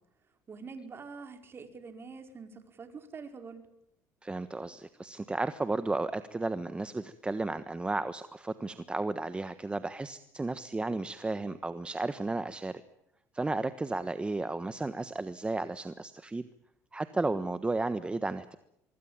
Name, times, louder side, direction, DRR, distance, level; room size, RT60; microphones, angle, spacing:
voice 1, 0.5-3.6, right 4 dB, 35° right, 6 dB, 4.9 m, -45 dB
voice 2, 4.2-12.8 13.3-16.5 16.9-18.6, right 2 dB, 15° right, 12 dB, 1.3 m, -33 dB
25.0 x 22.5 x 8.9 m, 0.81 s
supercardioid pair, 95°, 7 cm